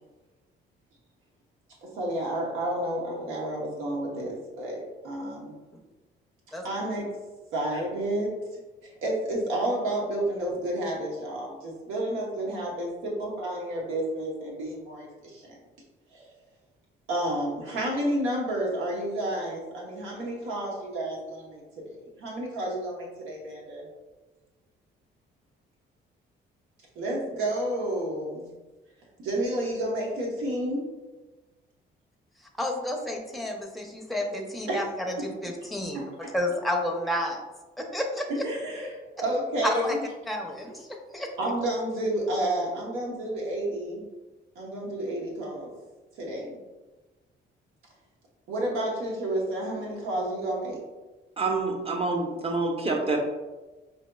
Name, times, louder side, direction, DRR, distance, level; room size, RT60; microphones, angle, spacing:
voice 1, 1.8-5.6 6.6-7.1 7.5-15.6 16.1-16.3 17.1-23.9 27.0-28.5 29.2-30.9 34.7-34.8 35.1-35.3 35.9-36.3 38.3-40.1 41.4-44.0 44.5-45.7 46.2-46.6 48.5-50.8, right 1 dB, 90° right, -2 dB, 1.0 m, -31 dB
voice 2, 32.6-35.1 35.4-37.4 37.8-38.3 39.6-40.0 40.3-40.9 41.1-41.3, left 1 dB, ahead, 0 dB, 0.6 m, -30 dB
voice 3, 51.4-53.2, right 3 dB, 30° right, 2 dB, 0.7 m, -27 dB
5.1 x 2.8 x 2.3 m, 1.2 s
cardioid pair, 90°, 20 cm